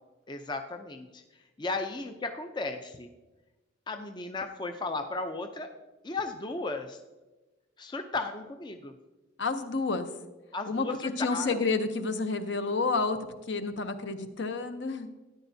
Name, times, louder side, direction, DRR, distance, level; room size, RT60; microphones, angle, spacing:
voice 1, 0.3-3.1 3.9-5.7 6.0-7.0 7.8-8.9 10.5-11.6, left 3 dB, 20° left, 6 dB, 0.4 m, -35 dB
voice 2, 9.4-10.1 10.7-13.2 13.5-15.1, left 3 dB, 60° left, 9 dB, 0.7 m, -30 dB
13.0 x 10.0 x 2.7 m, 1.1 s
head